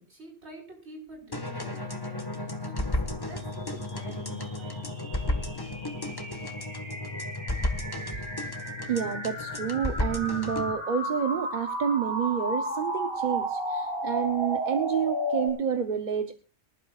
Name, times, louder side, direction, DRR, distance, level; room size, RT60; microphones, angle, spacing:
voice 1, 0.0-5.0, right 1 dB, 65° right, -1 dB, 5.1 m, -47 dB
sound 1, 1.3-10.7, left 2 dB, 20° left, 1.4 m, -33 dB
sound 2, 3.6-15.5, right 1 dB, 25° right, 3.4 m, -34 dB
voice 2, 8.9-16.3, right 7 dB, 45° right, 8 dB, 0.9 m, -29 dB
24.0 x 12.0 x 2.4 m, 0.34 s
omnidirectional pair, 1.2 m